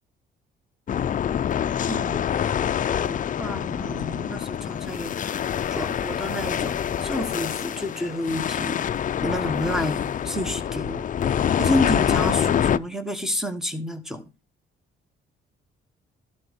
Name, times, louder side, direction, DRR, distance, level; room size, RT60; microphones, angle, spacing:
sound 1, 0.9-12.8, left 9 dB, 40° left, 0.5 m, -26 dB
voice 1, 1.9-2.2 3.0-5.4 5.7-8.8 9.2-11.0 11.6-14.2, left 1 dB, ahead, 1.5 m, -30 dB
12.0 x 4.3 x 5.2 m
cardioid pair, 90°, 20 cm